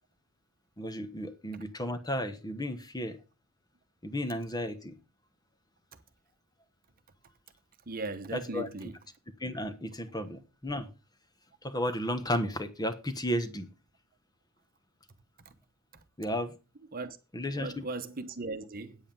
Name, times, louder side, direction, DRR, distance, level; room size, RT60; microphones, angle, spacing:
voice 1, 0.8-3.2 4.0-5.0 8.3-8.7 9.4-10.9 11.6-13.7 16.2-16.5 17.3-17.8, equal, 20° left, 1.1 m, -33 dB
voice 2, 7.9-9.0 16.9-17.2 17.5-19.0, right 3 dB, 45° right, 1.0 m, -38 dB
9.0 x 8.2 x 5.3 m
head